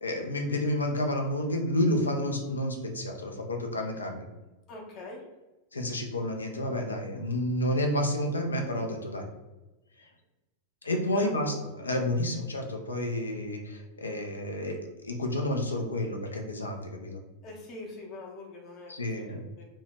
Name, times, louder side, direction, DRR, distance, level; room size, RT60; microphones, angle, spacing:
voice 1, 0.0-4.3 5.7-9.2 10.0-10.1 10.8-14.8 15.0-17.2 18.9-19.4, left 1 dB, 75° left, 3 dB, 0.5 m, -30 dB
voice 2, 4.7-5.2 11.1-11.6 17.4-19.6, left 2 dB, 40° left, 0 dB, 0.7 m, -43 dB
2.7 x 2.2 x 3.0 m, 1.1 s
figure-of-eight pair, 90°, 0 cm